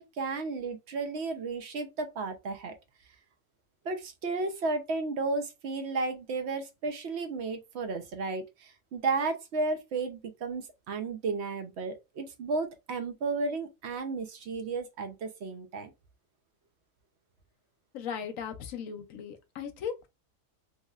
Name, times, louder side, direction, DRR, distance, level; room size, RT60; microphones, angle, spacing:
voice 1, 0.0-2.7 3.8-15.9, right 3 dB, 55° right, 0.8 m, -33 dB
voice 2, 17.9-19.9, left 7 dB, 70° left, 1.0 m, -37 dB
3.0 x 2.8 x 2.4 m
omnidirectional pair, 1.6 m